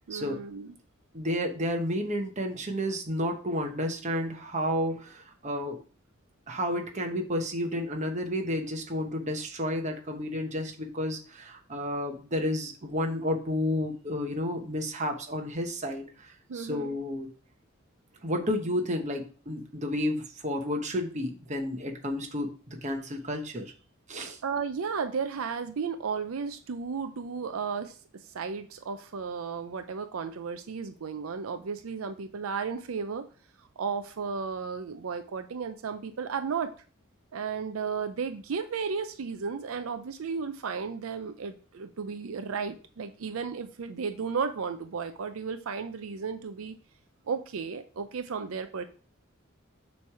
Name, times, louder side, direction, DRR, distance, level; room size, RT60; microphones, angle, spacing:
voice 1, 0.1-0.8 16.5-17.0 24.4-33.3 33.8-36.7 37.3-46.7 47.3-48.8, right 5 dB, 85° right, 9 dB, 0.5 m, -34 dB
voice 2, 1.1-5.8 6.5-17.3 18.2-23.7 24.1-24.4, equal, 35° right, 3 dB, 1.1 m, -31 dB
6.9 x 3.2 x 4.7 m, 0.39 s
head